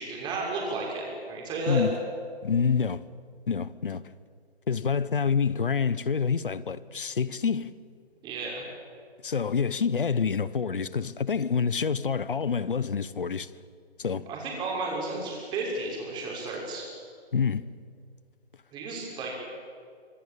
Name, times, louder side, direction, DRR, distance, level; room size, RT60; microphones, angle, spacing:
voice 1, 0.0-1.8 8.2-8.6 14.3-16.9 18.7-19.3, right 2 dB, 15° right, 6.2 m, -33 dB
voice 2, 1.7-2.0 2.4-3.1 3.5-4.0 4.7-7.8 9.2-13.5 14.0-14.3 17.3-17.7, left 6 dB, 55° left, 1.1 m, -27 dB
26.5 x 24.5 x 8.8 m
figure-of-eight pair, 140°, 32 cm